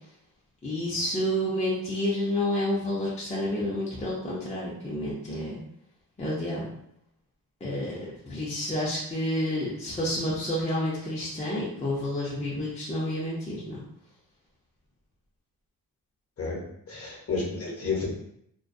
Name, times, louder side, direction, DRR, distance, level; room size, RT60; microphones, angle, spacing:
voice 1, 0.6-5.6 6.2-6.7 7.6-8.0 8.3-13.8, left 1 dB, 20° left, -6 dB, 0.5 m, -29 dB
voice 2, 16.9-18.1, left 4 dB, 40° left, -4 dB, 0.8 m, -30 dB
2.2 x 2.2 x 2.5 m, 0.73 s
cardioid pair, 105°, 36 cm